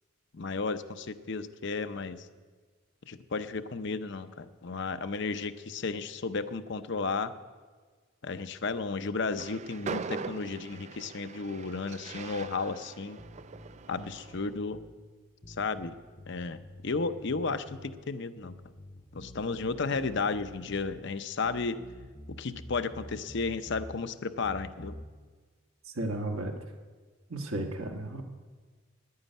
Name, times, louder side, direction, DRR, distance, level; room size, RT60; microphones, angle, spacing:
voice 1, 0.3-2.3 3.1-7.3 8.2-13.2 13.9-14.8 15.5-16.0 16.3-18.5 19.1-21.8 22.4-25.0, left 4 dB, 55° left, 10 dB, 0.7 m, -33 dB
Train, 9.2-14.5, right 5 dB, 30° right, 0.3 m, -41 dB
sound 1, 13.2-15.0 15.4-18.0 18.4-21.0 21.4-24.0 24.4-25.1, left 1 dB, 20° left, 0.7 m, -48 dB
voice 2, 25.9-26.6 27.3-28.2, right 1 dB, 75° right, 2 dB, 1.4 m, -33 dB
11.0 x 9.6 x 9.1 m, 1.5 s
head